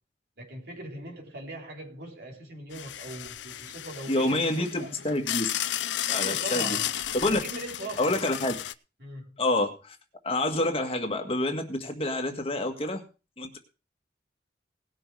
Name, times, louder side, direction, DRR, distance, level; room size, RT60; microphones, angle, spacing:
voice 1, 0.4-4.9 6.1-6.9 7.3-8.1 9.0-9.4, right 1 dB, 60° right, 3.6 m, -40 dB
sound 1, 2.7-8.7, left 12 dB, 90° left, 0.6 m, -33 dB
voice 2, 4.1-5.5 6.1-6.8 7.1-7.4 8.0-8.5 9.4-10.0 10.2-13.0 13.4-13.6, left 1 dB, 30° left, 1.8 m, -27 dB
18.5 x 6.4 x 4.8 m
head